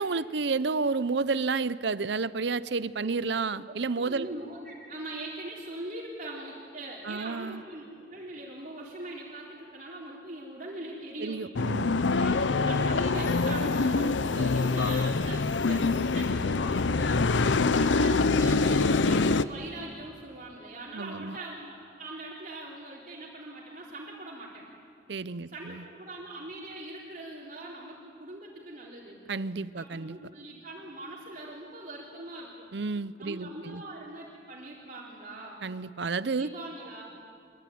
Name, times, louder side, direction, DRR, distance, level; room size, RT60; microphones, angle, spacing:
voice 1, 0.0-4.3 7.0-7.6 11.2-12.0 20.9-21.4 25.1-25.8 29.3-30.2 32.7-33.8 35.6-36.5, right 4 dB, 70° right, 16 dB, 0.7 m, -31 dB
voice 2, 3.6-11.4 12.2-17.3 17.8-24.6 25.5-29.2 29.8-32.7 33.2-35.6 36.4-37.0, right 2 dB, 45° right, -5 dB, 3.9 m, -41 dB
sound 1, 11.6-19.4, left 3 dB, 80° left, 0.7 m, -25 dB
25.5 x 23.0 x 9.4 m, 2.4 s
head